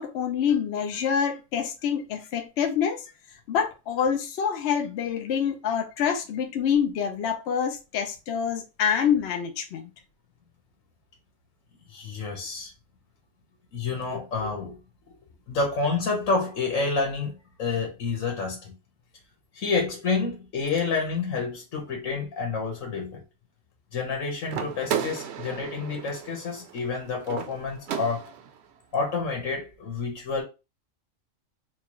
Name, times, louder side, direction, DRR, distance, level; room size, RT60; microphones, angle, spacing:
voice 1, 0.0-3.0 3.5-9.9 14.1-14.2, left 7 dB, 65° left, 0.8 m, -26 dB
voice 2, 11.9-12.7 13.7-14.8 15.5-18.8 19.5-23.2 23.9-28.3 28.9-30.4, left 4 dB, 90° left, 1.5 m, -29 dB
sound 1, 24.5-28.6, right 8 dB, 65° right, 0.8 m, -34 dB
4.5 x 2.3 x 2.9 m
omnidirectional pair, 1.3 m